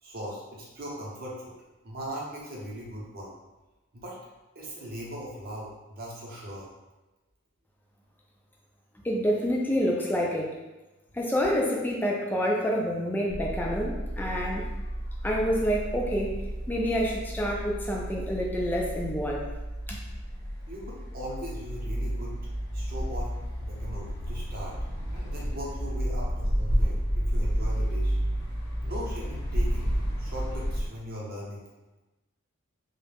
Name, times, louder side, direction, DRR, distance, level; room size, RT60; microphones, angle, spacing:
voice 1, 0.0-1.5 1.8-3.3 3.9-4.2 4.5-6.7 11.4-11.5 20.7-22.4 22.7-23.3 23.7-24.7 25.1-28.2 28.8-31.6, equal, 45° right, -4 dB, 0.7 m, -39 dB
voice 2, 9.0-10.5 11.1-14.6 15.2-16.3 16.7-19.4 19.9-20.0, equal, 10° left, -2 dB, 0.3 m, -27 dB
sound 1, 13.3-30.9, equal, 90° left, 0.7 m, -31 dB
2.3 x 2.1 x 3.3 m, 1.1 s
head